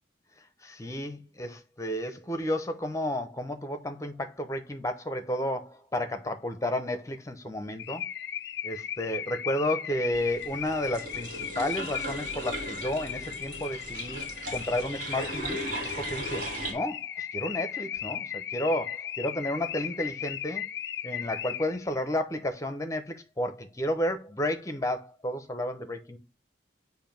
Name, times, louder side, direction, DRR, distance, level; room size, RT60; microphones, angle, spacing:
voice 1, 0.6-8.0 8.6-15.6 16.0-20.7 21.0-26.2, left 1 dB, 15° left, 0.7 m, -32 dB
Car / Alarm, 7.8-21.9, left 10 dB, 60° left, 0.4 m, -37 dB
sound 1, 10.1-16.7, right 1 dB, 45° right, 1.7 m, -37 dB
7.4 x 2.7 x 5.1 m
head